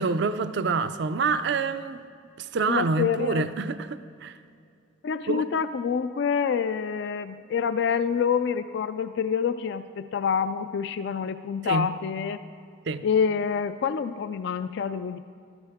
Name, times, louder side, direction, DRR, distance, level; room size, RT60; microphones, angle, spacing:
voice 1, 0.0-2.0 2.4-4.3 5.3-5.4 11.6-11.9 12.9-13.0, right 4 dB, 60° right, 12 dB, 0.4 m, -27 dB
voice 2, 2.7-3.4 5.0-12.4 13.0-15.2, left 6 dB, 60° left, 12 dB, 0.3 m, -27 dB
13.5 x 13.0 x 3.5 m, 2.4 s
head